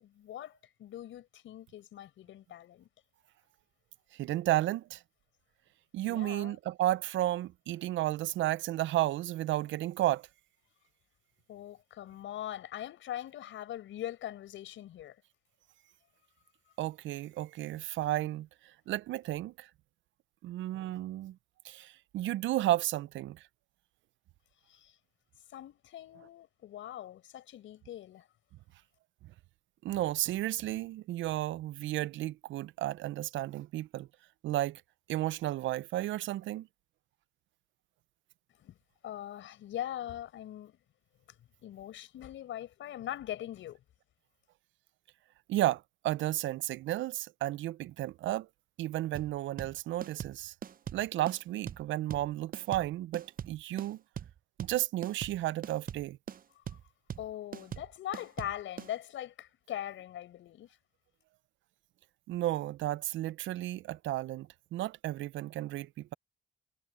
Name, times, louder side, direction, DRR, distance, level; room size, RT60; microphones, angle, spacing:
voice 1, 0.0-2.9 6.0-6.6 11.5-15.2 24.7-24.9 25.5-28.3 38.6-38.7 39.0-40.8 41.6-43.8 56.5-56.8 57.2-60.7, left 12 dB, 75° left, 6.1 m, -42 dB
voice 2, 4.1-5.0 5.9-10.3 16.8-18.5 18.9-19.7 20.4-21.4 21.6-23.4 29.8-34.1 34.4-34.8 35.1-36.7 45.5-48.5 48.8-50.5 50.9-54.0 54.6-56.2 62.3-66.1, right 15 dB, 75° right, 0.5 m, -33 dB
sound 1, 49.1-58.9, right 8 dB, 45° right, 0.7 m, -42 dB
cardioid pair, 90°, 20 cm